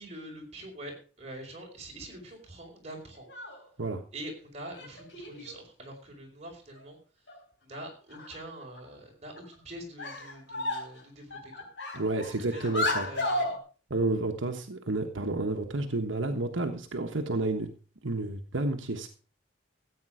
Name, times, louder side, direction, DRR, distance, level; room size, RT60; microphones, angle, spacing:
voice 1, 0.0-3.3 4.1-7.0 7.6-11.7 12.5-13.6, right 1 dB, 35° right, 0 dB, 4.6 m, -44 dB
sound 1, 3.1-3.6 4.7-5.6 6.8-6.9 7.3-7.4 7.7-7.8 8.1-8.8 9.4-9.5 10.0-11.0 11.3-13.6, left 2 dB, 70° left, 4.5 m, -33 dB
voice 2, 11.9-13.1 13.9-17.7 18.0-19.1, right 2 dB, 80° right, 4 dB, 1.3 m, -30 dB
14.5 x 8.9 x 4.9 m, 0.38 s
head